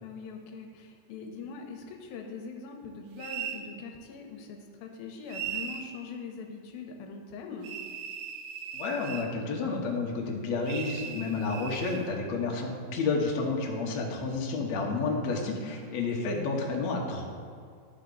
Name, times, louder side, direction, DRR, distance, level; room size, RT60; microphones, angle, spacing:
voice 1, 0.0-7.7, left 4 dB, 85° left, 3 dB, 2.5 m, -42 dB
sound 1, 3.2-3.7 5.3-5.9 7.6-9.3 10.7-12.1, right 8 dB, 85° right, 1.8 m, -38 dB
voice 2, 8.7-17.2, left 3 dB, 65° left, -1 dB, 1.8 m, -30 dB
12.0 x 4.5 x 3.8 m, 2.2 s
omnidirectional pair, 4.2 m